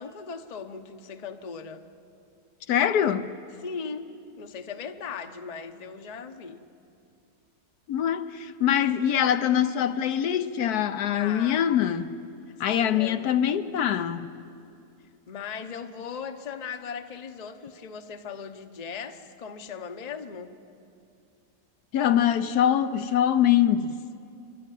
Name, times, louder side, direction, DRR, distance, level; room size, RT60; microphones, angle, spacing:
voice 1, 0.0-1.8 3.6-4.1 4.4-6.6 11.1-11.7 12.7-13.4 15.3-20.5, left 6 dB, 35° left, 0.8 m, -38 dB
voice 2, 2.7-3.3 7.9-12.2 12.6-14.3 21.9-23.9, left 10 dB, 75° left, 1.2 m, -23 dB
27.0 x 12.5 x 9.1 m
omnidirectional pair, 1.7 m